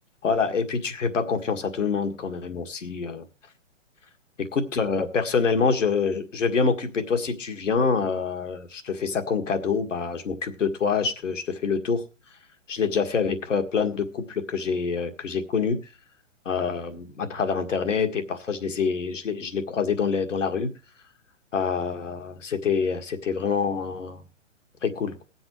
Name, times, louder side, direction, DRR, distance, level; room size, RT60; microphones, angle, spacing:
voice 1, 0.2-3.2 4.7-12.0 12.7-15.8 16.5-20.7 21.5-24.2 24.8-25.2, left 5 dB, 75° left, 7 dB, 1.9 m, -26 dB
22.0 x 7.8 x 3.1 m, 0.30 s
hypercardioid pair, 130°, 37 cm